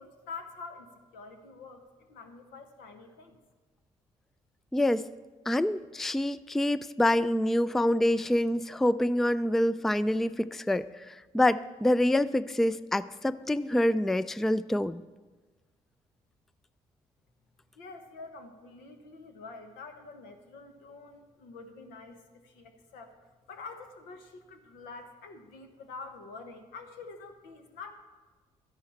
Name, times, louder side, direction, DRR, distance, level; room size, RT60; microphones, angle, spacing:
voice 1, 0.0-3.4 17.7-23.2 23.5-27.9, left 4 dB, 80° left, 6 dB, 1.2 m, -46 dB
voice 2, 4.7-5.1 5.5-15.0, left 1 dB, ahead, 16 dB, 0.3 m, -26 dB
13.0 x 11.0 x 4.4 m, 1.3 s
hypercardioid pair, 50°, 15 cm